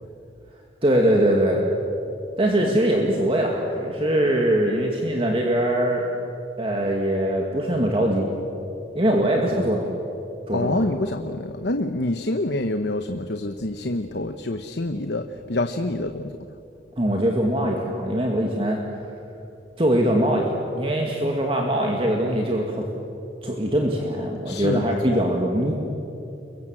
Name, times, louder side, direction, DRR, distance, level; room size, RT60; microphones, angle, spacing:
voice 1, 0.8-1.6 2.4-6.1 6.6-8.3 9.0-9.9 10.5-10.8 17.0-18.8 19.8-22.9 23.4-25.7, right 1 dB, 30° right, 0 dB, 2.3 m, -22 dB
voice 2, 10.5-16.3 24.4-25.2, left 1 dB, 65° left, 7 dB, 1.0 m, -27 dB
29.5 x 23.0 x 7.8 m, 2.9 s
head